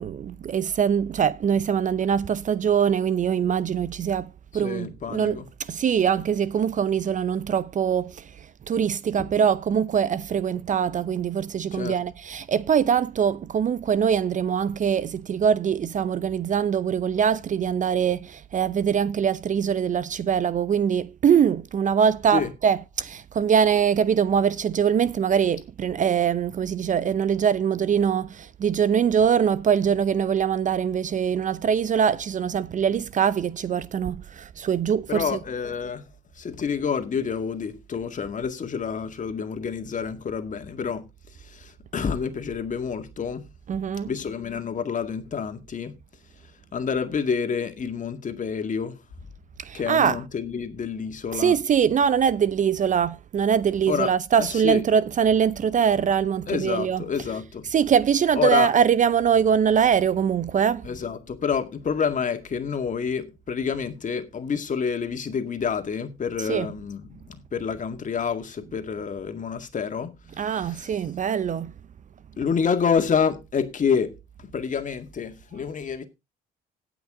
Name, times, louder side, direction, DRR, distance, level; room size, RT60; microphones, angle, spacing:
voice 1, 0.0-5.4 5.7-8.2 8.7-35.4 43.7-44.1 49.6-50.2 51.3-57.0 57.7-60.8 66.5-66.7 70.4-71.7, right 7 dB, 40° right, 0.6 m, -23 dB
voice 2, 4.5-5.5 11.7-12.0 22.3-22.5 32.9-33.0 35.1-43.5 44.0-46.0 46.3-49.0 49.7-51.6 53.9-54.1 54.4-54.8 56.5-57.7 58.4-58.7 60.8-71.0 72.4-76.0, left 6 dB, 40° left, 2.0 m, -28 dB
17.5 x 6.0 x 3.7 m
hypercardioid pair, 60°, 20 cm